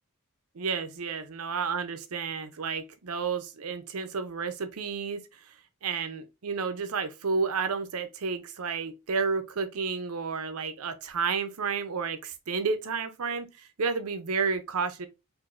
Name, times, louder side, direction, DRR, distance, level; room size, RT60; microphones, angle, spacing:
voice 1, 0.5-5.2 5.8-15.1, right 5 dB, 80° right, 0.6 m, -31 dB
4.8 x 2.6 x 2.5 m
head